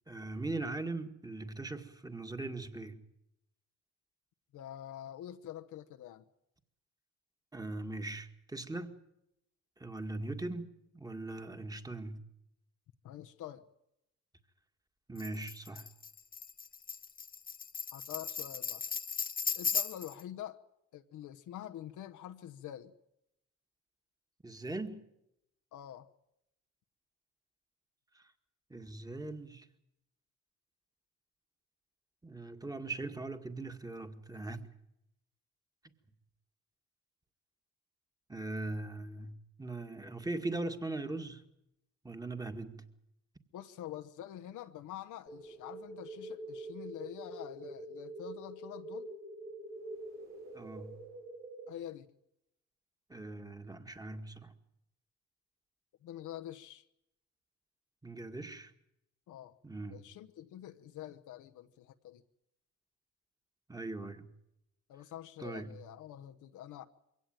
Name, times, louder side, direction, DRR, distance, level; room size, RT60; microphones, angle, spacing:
voice 1, 0.1-3.0 7.5-9.0 9.8-12.2 15.1-15.9 24.4-25.0 28.2-28.3 28.7-29.7 32.2-34.6 38.3-41.4 42.0-42.8 50.5-51.0 53.1-54.5 58.0-58.7 59.6-60.0 63.7-64.3 65.4-65.8, right 2 dB, 10° right, 2.0 m, -40 dB
voice 2, 4.5-6.3 13.0-13.6 17.9-18.9 19.5-20.6 20.9-22.9 25.7-26.1 43.5-49.1 51.7-52.1 56.0-56.9 59.3-59.5 59.9-62.2 64.9-66.9, left 12 dB, 80° left, 1.1 m, -46 dB
Tambourine, 15.2-20.2, left 6 dB, 30° left, 0.9 m, -37 dB
sound 1, 45.3-51.7, right 2 dB, 70° right, 5.9 m, -45 dB
23.0 x 17.0 x 9.1 m
cardioid pair, 90°, 30 cm